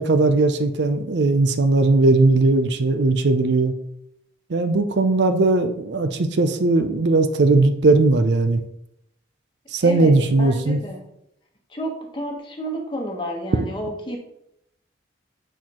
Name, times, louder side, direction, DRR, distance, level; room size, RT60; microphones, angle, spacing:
voice 1, 0.0-3.7 4.5-8.6 9.7-10.8 13.6-13.7, right 3 dB, 65° right, 8 dB, 0.5 m, -18 dB
voice 2, 9.8-10.1 10.4-11.0 11.7-14.2, equal, 25° left, 1 dB, 1.1 m, -30 dB
8.2 x 4.4 x 3.0 m, 0.77 s
head